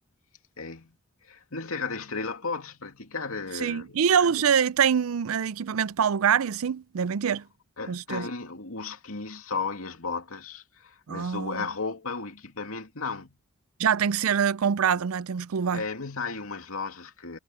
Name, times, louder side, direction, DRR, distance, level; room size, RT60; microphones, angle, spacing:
voice 1, 0.6-1.0 1.2-4.0 4.3-4.4 7.8-13.4 15.7-17.4, left 4 dB, 85° left, 2.6 m, -34 dB
voice 2, 3.6-7.4 7.9-8.3 11.1-11.6 13.8-15.8, right 7 dB, 80° right, 0.5 m, -25 dB
head